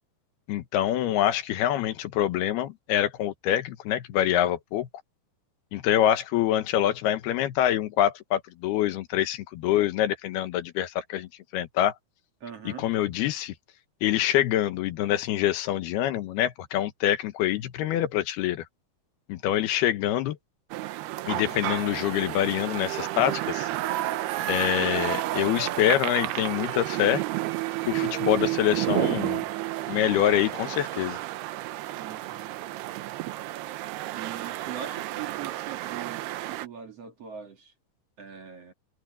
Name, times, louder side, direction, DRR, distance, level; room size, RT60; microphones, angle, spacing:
voice 1, 0.5-4.9 5.7-11.9 12.7-13.5 14.0-18.6 19.3-20.4 21.3-23.7 24.5-27.2 27.9-29.4 29.9-31.2, left 12 dB, 80° left, 3.1 m, -25 dB
voice 2, 12.4-12.9 32.0-32.5 34.1-37.7 38.2-38.7, right 8 dB, 45° right, 2.8 m, -41 dB
sound 1, 20.7-36.7, right 16 dB, 90° right, 3.0 m, -31 dB
open air
omnidirectional pair, 4.6 m